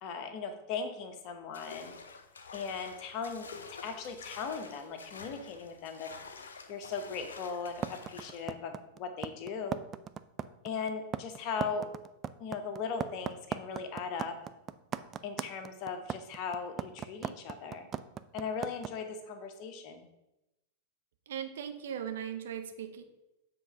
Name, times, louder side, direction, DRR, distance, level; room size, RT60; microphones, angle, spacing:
voice 1, 0.0-1.9 2.5-6.1 6.7-9.8 10.6-11.8 12.4-14.3 15.2-17.9 18.3-20.0, left 5 dB, 40° left, 6 dB, 1.0 m, -38 dB
sound 1, 1.5-8.4, left 4 dB, 70° left, 0.6 m, -49 dB
sound 2, 7.8-18.9, right 8 dB, 25° right, 0.3 m, -37 dB
voice 2, 21.3-23.0, right 8 dB, 60° right, 7 dB, 0.7 m, -38 dB
7.4 x 3.8 x 5.6 m, 0.92 s
figure-of-eight pair, 90°, 0 cm